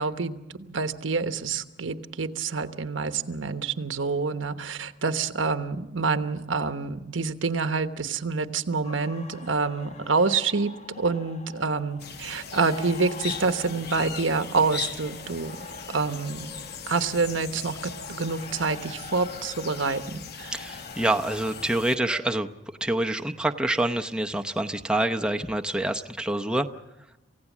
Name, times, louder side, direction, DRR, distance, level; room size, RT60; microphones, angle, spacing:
voice 1, 0.0-15.6 15.9-16.5 16.9-20.5, right 4 dB, 90° right, 9 dB, 1.1 m, -27 dB
sound 1, 8.8-22.4, left 3 dB, 35° left, 1.0 m, -45 dB
sound 2, 12.0-22.0, left 7 dB, 55° left, 1.0 m, -40 dB
voice 2, 20.5-22.5 22.8-26.7, right 1 dB, 5° right, 4 dB, 0.7 m, -26 dB
28.0 x 16.0 x 7.3 m, 0.96 s
head